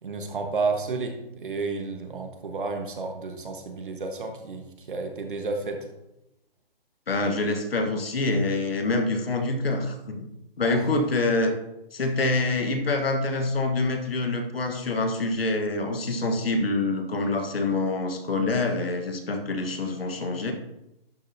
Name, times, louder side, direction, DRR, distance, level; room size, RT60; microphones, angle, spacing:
voice 1, 0.0-5.8 10.7-10.8, right 4 dB, 60° right, 5 dB, 1.3 m, -31 dB
voice 2, 7.1-10.3 10.6-11.5 11.9-20.5, left 2 dB, 75° left, 6 dB, 1.4 m, -26 dB
11.0 x 5.3 x 2.8 m, 0.89 s
hypercardioid pair, 175°, 30 cm